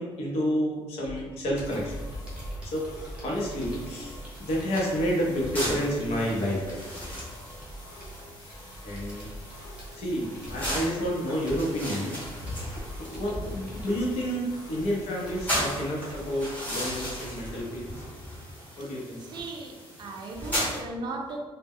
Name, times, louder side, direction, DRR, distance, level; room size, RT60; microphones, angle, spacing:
voice 1, 0.0-1.9 2.6-7.1 8.8-9.3 9.9-18.0 18.8-19.2, equal, 80° left, -3 dB, 0.7 m, -30 dB
Computer keyboard, 1.0-17.6, right 1 dB, 10° right, 0.7 m, -44 dB
sound 1, 1.6-19.6, left 1 dB, 35° left, 0.6 m, -50 dB
sound 2, 3.6-20.8, equal, 15° left, 0.9 m, -37 dB
voice 2, 19.3-19.7 20.0-21.4, right 2 dB, 45° right, 2 dB, 0.4 m, -36 dB
2.1 x 2.1 x 3.5 m, 1.3 s
cardioid pair, 155°, 10 cm